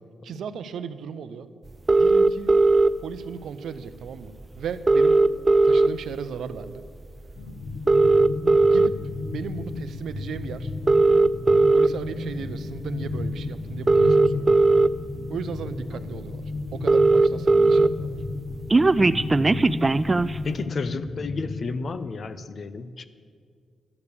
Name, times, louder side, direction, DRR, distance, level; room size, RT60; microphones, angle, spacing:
voice 1, 0.2-1.5 2.0-2.5 3.0-5.3 5.6-6.8 8.6-8.9 9.2-10.7 11.7-14.7 15.3-16.4 16.7-18.1, right 7 dB, 75° right, 12 dB, 0.6 m, -36 dB
sound 1, 1.9-2.9 4.1-4.2 4.4-4.5 4.7-6.2 6.6-6.9 7.7-8.9 9.6-9.8 10.7-11.9 13.1-13.2 13.7-14.9 15.6-15.7 16.0-16.1 16.3-16.4 16.6-17.9 18.2-20.4, right 2 dB, 25° right, 0.3 m, -17 dB
sound 2, 7.4-21.7, left 3 dB, 70° left, 1.1 m, -33 dB
voice 2, 20.4-23.1, left 4 dB, 50° left, 13 dB, 0.6 m, -32 dB
12.0 x 6.8 x 8.4 m, 2.1 s
cardioid pair, 90°, 0 cm